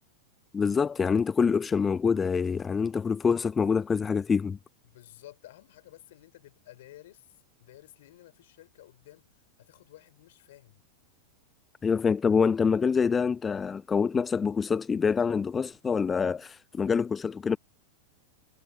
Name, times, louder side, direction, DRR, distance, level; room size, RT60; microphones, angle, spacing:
voice 1, 0.5-4.6 11.8-17.6, left 6 dB, 15° left, 0.4 m, -26 dB
voice 2, 4.8-7.3 7.6-10.8, left 15 dB, 55° left, 4.9 m, -53 dB
figure-of-eight pair, 90°, 0 cm